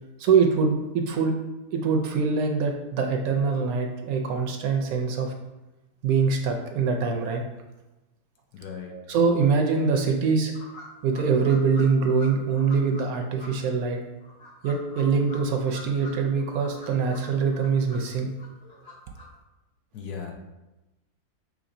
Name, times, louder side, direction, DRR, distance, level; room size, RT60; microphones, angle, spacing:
voice 1, 0.2-1.3 1.7-5.3 6.0-7.4 8.9-10.5 11.0-14.0 14.6-18.3, right 5 dB, 70° right, 3 dB, 1.0 m, -24 dB
voice 2, 8.5-9.0 19.9-20.3, left 6 dB, 75° left, 2 dB, 1.2 m, -37 dB
sound 1, 10.5-13.1 13.4-13.5 14.2-16.1 16.4-18.0 18.4-19.2, left 2 dB, 45° left, 1.0 m, -45 dB
5.9 x 3.2 x 2.6 m, 1.0 s
omnidirectional pair, 1.7 m